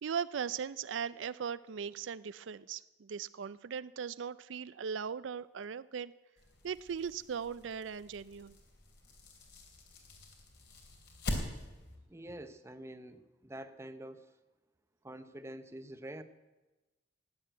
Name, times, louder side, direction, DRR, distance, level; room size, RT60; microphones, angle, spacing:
voice 1, 0.0-6.1 6.6-8.5, right 7 dB, 85° right, 16 dB, 0.4 m, -39 dB
sound 1, 6.4-12.0, left 1 dB, 60° left, 3.1 m, -44 dB
voice 2, 12.1-14.3 15.0-16.2, right 1 dB, 15° right, 10 dB, 0.8 m, -46 dB
15.5 x 9.6 x 9.1 m, 1.1 s
head